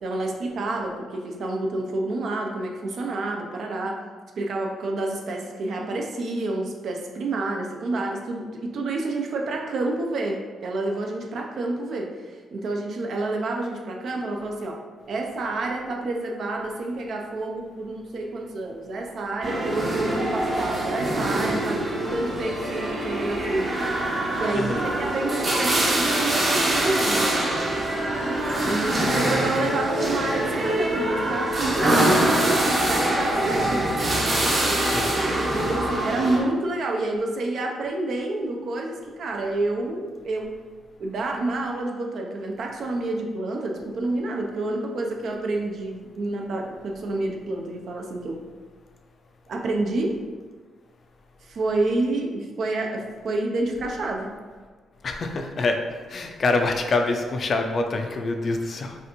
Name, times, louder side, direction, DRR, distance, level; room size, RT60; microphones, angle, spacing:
voice 1, 0.0-4.0 4.4-14.8 15.1-21.8 22.1-23.8 24.3-27.5 28.6-33.9 35.5-40.5 41.0-48.4 49.5-50.1 51.5-54.3, right 2 dB, 60° right, 1 dB, 0.6 m, -28 dB
sound 1, 19.4-36.4, right 1 dB, 30° right, 0.8 m, -24 dB
voice 2, 24.5-24.9 34.8-35.1 55.0-55.8 56.1-59.0, left 3 dB, 45° left, 4 dB, 0.4 m, -25 dB
5.5 x 2.5 x 3.0 m, 1.5 s
cardioid pair, 120°, 0 cm